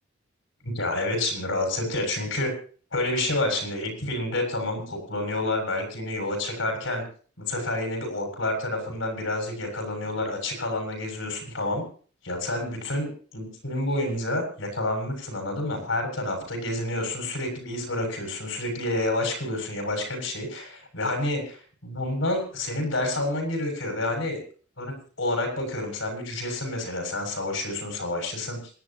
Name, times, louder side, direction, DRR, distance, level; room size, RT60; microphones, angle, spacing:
voice 1, 0.6-2.5 2.9-7.0 7.4-11.8 12.2-21.6 21.8-24.4 24.8-28.6, left 1 dB, 65° left, 3 dB, 7.1 m, -29 dB
28.0 x 11.5 x 3.0 m, 0.42 s
head